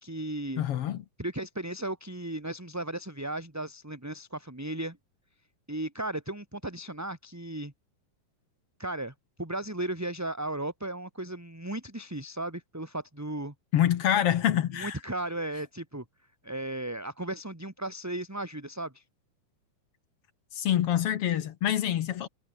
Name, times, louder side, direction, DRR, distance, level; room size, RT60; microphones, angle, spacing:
voice 1, 0.0-0.6 1.2-5.0 5.7-7.7 8.8-13.5 14.7-16.0 16.4-19.0, right 1 dB, 5° right, 1.8 m, -35 dB
voice 2, 0.6-1.0 13.7-15.0 20.5-22.3, left 11 dB, 60° left, 1.6 m, -26 dB
omnidirectional pair, 3.6 m